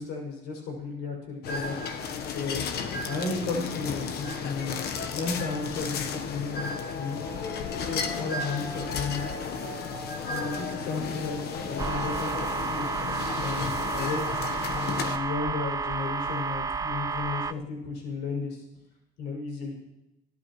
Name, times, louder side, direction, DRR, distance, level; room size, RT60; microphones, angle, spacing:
voice 1, 0.0-1.7 2.3-2.7 3.0-4.8 5.1-7.2 7.7-9.2 10.3-12.9 13.4-14.2 14.5-18.6 19.2-19.7, left 4 dB, 85° left, 0 dB, 6.6 m, -34 dB
sound 1, 1.4-15.2, left 5 dB, 70° left, 1.3 m, -34 dB
sound 2, 6.6-12.5, left 1 dB, 50° left, 5.4 m, -41 dB
sound 3, 11.8-17.5, right 5 dB, 20° right, 0.4 m, -31 dB
26.5 x 12.5 x 3.2 m, 0.94 s
cardioid pair, 110°, 17 cm